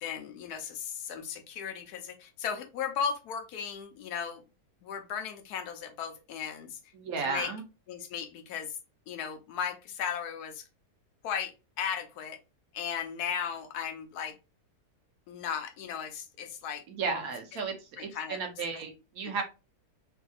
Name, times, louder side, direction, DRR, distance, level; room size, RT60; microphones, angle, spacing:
voice 1, 0.0-4.4 4.8-6.8 7.2-7.5 7.9-8.8 9.1-10.6 11.2-12.4 12.7-14.3 15.3-16.8 18.0-18.4 18.7-18.8, left 7 dB, 80° left, 5 dB, 1.1 m, -36 dB
voice 2, 6.9-7.6 16.9-19.4, right 5 dB, 70° right, 5 dB, 1.1 m, -34 dB
3.3 x 2.6 x 2.3 m, 0.29 s
omnidirectional pair, 1.7 m